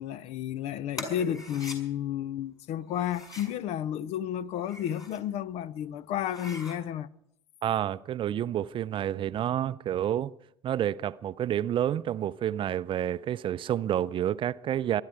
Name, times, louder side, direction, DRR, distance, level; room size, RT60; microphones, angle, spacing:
voice 1, 0.0-7.1, left 10 dB, 55° left, 0.6 m, -32 dB
sound 1, 0.9-1.8 2.9-3.6 4.5-5.2 5.7-5.8 6.2-6.8, left 2 dB, 25° left, 5.2 m, -42 dB
voice 2, 7.6-10.3 10.6-15.0, right 11 dB, 40° right, 0.5 m, -29 dB
24.0 x 11.5 x 4.7 m
figure-of-eight pair, 60°, 13 cm